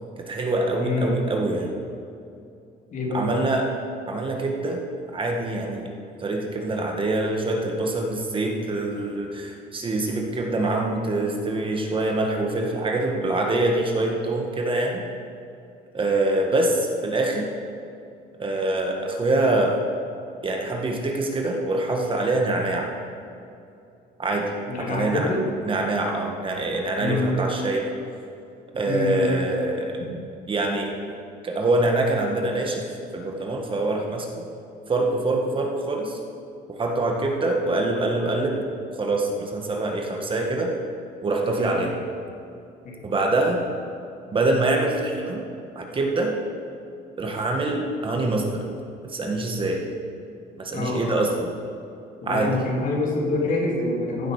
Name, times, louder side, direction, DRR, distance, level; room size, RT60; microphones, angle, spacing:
voice 1, 0.3-1.7 3.1-3.7 4.1-4.8 5.1-5.9 6.2-15.0 15.9-17.5 18.4-19.8 20.4-22.9 24.2-24.5 24.8-25.3 25.6-27.9 28.7-30.0 30.5-30.9 31.4-32.8 33.1-34.4 34.9-36.2 36.7-38.6 39.0-40.8 41.2-41.9 43.0-43.6 44.3-45.4 45.7-46.3 47.2-48.7 49.0-49.9 50.6-51.5 52.2-52.5, right 2 dB, 30° right, 1 dB, 1.6 m, -24 dB
voice 2, 0.8-1.2 2.9-3.3 24.7-25.4 27.0-27.3 28.9-29.3 41.6-41.9 42.8-43.0 50.7-51.0 52.2-54.3, left 3 dB, 50° left, -1 dB, 2.7 m, -26 dB
15.5 x 7.6 x 4.9 m, 2.6 s
cardioid pair, 110°, 17 cm